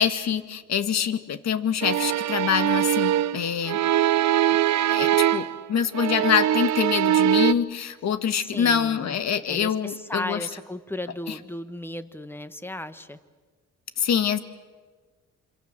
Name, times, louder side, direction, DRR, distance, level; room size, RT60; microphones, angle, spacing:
voice 1, 0.0-3.8 4.9-10.4 11.3-11.4 14.0-14.4, left 8 dB, 60° left, 10 dB, 1.7 m, -25 dB
sound 1, 1.8-5.6 5.9-7.5, right 12 dB, 65° right, 0.8 m, -22 dB
voice 2, 8.4-9.2 9.5-13.2, left 1 dB, 5° left, 11 dB, 1.4 m, -35 dB
27.0 x 25.5 x 7.5 m, 1.4 s
cardioid pair, 90°, 30 cm